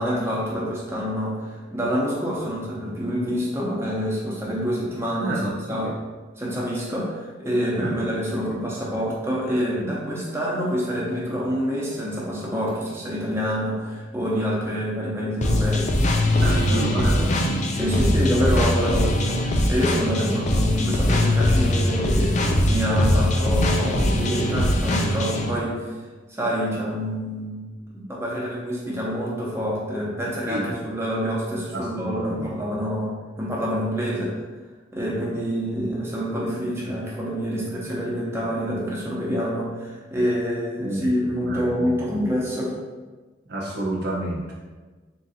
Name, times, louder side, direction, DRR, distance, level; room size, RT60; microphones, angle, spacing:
voice 1, 0.0-5.9 6.4-15.9 16.3-17.3 17.7-26.0 26.3-27.6 27.9-34.3 34.9-42.7, equal, 15° right, -5 dB, 0.9 m, -27 dB
voice 2, 5.2-5.9 7.8-7.9 16.4-17.3 20.1-20.2 30.5-30.7 31.7-32.5 40.8-42.0 43.5-44.5, right 1 dB, 60° right, -5 dB, 0.8 m, -30 dB
sound 1, 15.4-25.5, left 1 dB, 40° left, 0.4 m, -21 dB
3.7 x 2.6 x 4.1 m, 1.3 s
head